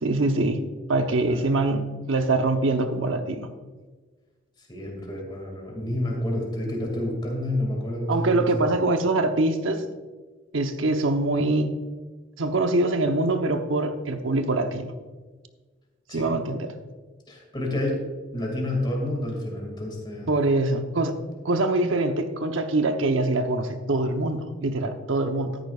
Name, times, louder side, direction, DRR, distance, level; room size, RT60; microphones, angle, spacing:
voice 1, 0.0-0.6 0.9-3.5 8.1-9.8 10.5-11.7 12.4-14.9 16.1-16.7 20.3-21.1 21.4-25.6, right 2 dB, 85° right, 7 dB, 0.9 m, -24 dB
voice 2, 1.3-1.7 4.7-8.5 16.1-16.3 17.3-20.3, left 1 dB, 25° left, -1 dB, 2.3 m, -29 dB
13.5 x 10.5 x 2.4 m, 1.4 s
head